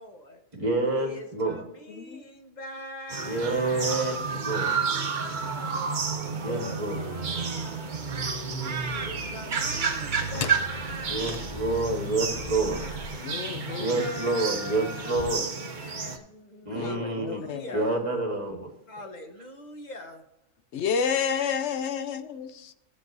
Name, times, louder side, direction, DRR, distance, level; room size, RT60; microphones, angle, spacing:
voice 1, 0.0-0.4 0.9-5.9 6.4-8.2 8.8-13.0 13.6-17.9 18.9-20.2, left 1 dB, 35° left, 1.2 m, -43 dB
voice 2, 0.5-1.6 3.2-4.7 6.4-7.0 11.0-12.8 13.8-15.5 16.6-17.4 17.7-18.7, right 2 dB, 25° right, 1.4 m, -28 dB
sound 1, 3.1-16.2, right 5 dB, 40° right, 0.8 m, -31 dB
sound 2, 6.1-13.1, right 2 dB, 85° right, 1.5 m, -39 dB
sound 3, 9.9-15.4, left 6 dB, 80° left, 0.3 m, -42 dB
voice 3, 13.2-14.1 16.7-17.8 20.7-22.7, left 6 dB, 65° left, 0.9 m, -30 dB
14.5 x 7.6 x 2.6 m
omnidirectional pair, 1.4 m